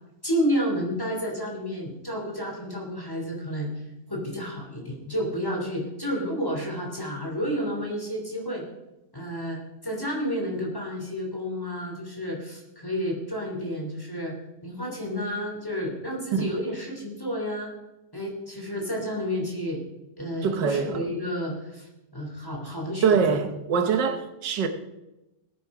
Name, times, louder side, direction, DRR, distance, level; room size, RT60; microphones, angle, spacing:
voice 1, 0.2-3.7 4.1-8.6 9.1-14.3 14.6-17.7 18.1-19.8 20.2-23.4, equal, 10° left, 3.1 m, -30 dB
voice 2, 20.4-21.0 23.0-24.7, right 6 dB, 85° right, 1.7 m, -24 dB
18.0 x 9.8 x 4.9 m
omnidirectional pair, 1.8 m